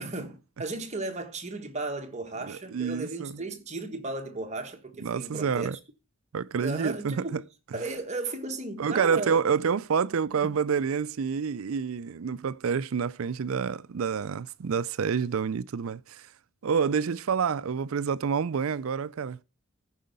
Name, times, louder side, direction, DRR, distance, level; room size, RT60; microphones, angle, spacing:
voice 1, 0.0-5.8 6.6-7.4 7.7-9.4 10.4-10.5, right 2 dB, 30° right, 1.3 m, -35 dB
voice 2, 2.5-3.4 5.0-5.8 6.3-7.4 8.8-16.3 16.6-19.4, right 6 dB, 70° right, 0.4 m, -28 dB
14.5 x 5.6 x 5.2 m
head